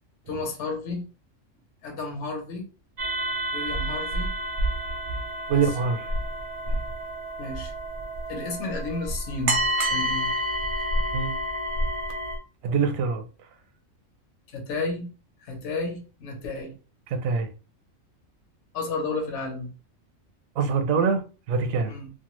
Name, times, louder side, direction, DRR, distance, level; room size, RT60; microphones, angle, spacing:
voice 1, 0.3-1.0 1.8-2.7 3.5-4.3 5.5-5.6 7.4-7.7 8.3-9.6 9.9-10.3 14.5-15.1 15.4-16.7 18.7-19.7 21.9-22.1, left 3 dB, 60° left, 1.1 m, -32 dB
sound 1, 3.0-12.4, right 1 dB, 55° right, 0.6 m, -29 dB
voice 2, 5.5-6.1 6.7-6.8 11.1-11.4 12.6-13.2 17.1-17.5 20.6-21.2 21.5-21.9, right 5 dB, 85° right, 1.0 m, -24 dB
2.7 x 2.2 x 2.9 m
omnidirectional pair, 1.4 m